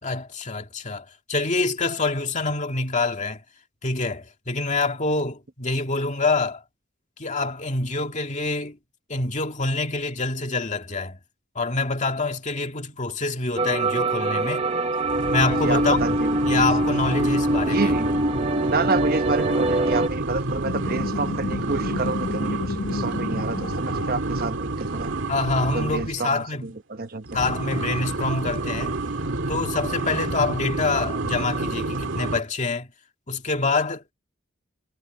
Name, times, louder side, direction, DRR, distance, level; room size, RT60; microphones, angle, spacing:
voice 1, 0.0-3.4 3.8-6.6 7.2-8.8 9.1-11.2 11.6-14.7 15.3-16.2 16.4-17.9 25.3-26.7 27.3-29.0 29.5-32.9 33.3-34.0, left 3 dB, 40° left, 2.2 m, -26 dB
sound 1, 13.6-20.1, right 1 dB, 30° right, 1.3 m, -23 dB
sound 2, 15.0-26.2 27.2-32.4, right 2 dB, 70° right, 2.5 m, -29 dB
voice 2, 15.5-16.6 17.7-18.1 18.7-25.1 25.7-27.4, right 3 dB, 50° right, 1.1 m, -29 dB
sound 3, 20.5-24.9, left 3 dB, 75° left, 1.3 m, -32 dB
head